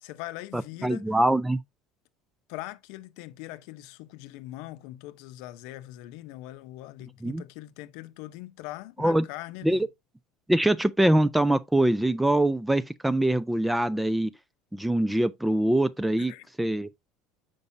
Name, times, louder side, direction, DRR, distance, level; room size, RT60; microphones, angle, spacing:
voice 1, 0.0-1.0 2.5-9.9 16.2-16.5, left 16 dB, 70° left, 0.6 m, -41 dB
voice 2, 0.5-1.6 7.2-7.4 9.0-9.3 9.6-9.9 10.5-14.3 14.7-16.3 16.6-17.1, right 1 dB, 5° right, 0.3 m, -24 dB
6.9 x 5.3 x 2.6 m
cardioid pair, 140°, 0 cm